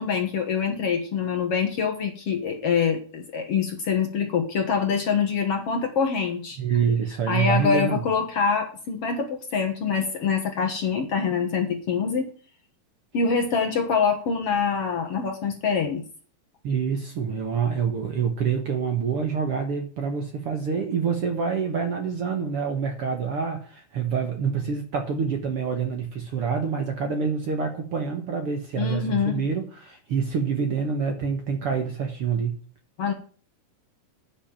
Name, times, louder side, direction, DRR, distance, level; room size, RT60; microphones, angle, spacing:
voice 1, 0.0-6.8 7.3-12.3 13.1-16.0 28.8-29.5 33.0-33.1, left 6 dB, 55° left, 4 dB, 1.9 m, -25 dB
voice 2, 6.6-8.0 16.6-32.6, right 6 dB, 55° right, 4 dB, 1.8 m, -26 dB
9.8 x 6.2 x 8.7 m, 0.41 s
omnidirectional pair, 4.0 m